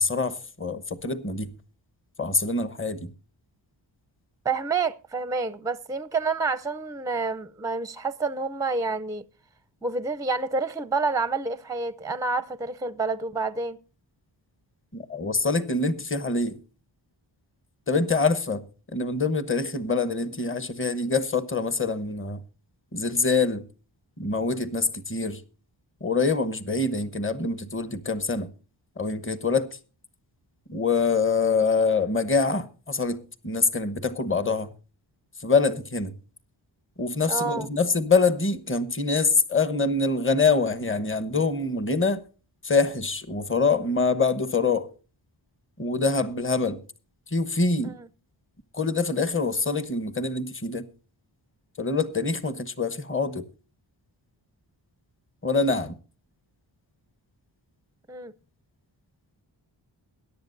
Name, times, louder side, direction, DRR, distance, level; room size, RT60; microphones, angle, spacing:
voice 1, 0.0-1.5 2.2-3.1 14.9-16.6 17.9-18.6 18.9-22.4 22.9-23.6 24.2-25.4 26.0-28.5 29.0-29.7 30.7-34.7 35.4-36.1 37.0-42.2 42.6-44.9 45.8-46.8 47.3-48.0 48.7-50.9 51.8-53.4 55.4-56.0, left 4 dB, 25° left, 1.1 m, -25 dB
voice 2, 4.4-9.2 9.8-13.8 37.3-37.7 47.8-48.1 58.1-58.3, right 4 dB, 10° right, 0.5 m, -28 dB
21.5 x 11.0 x 2.6 m
wide cardioid pair, 120°, 47 cm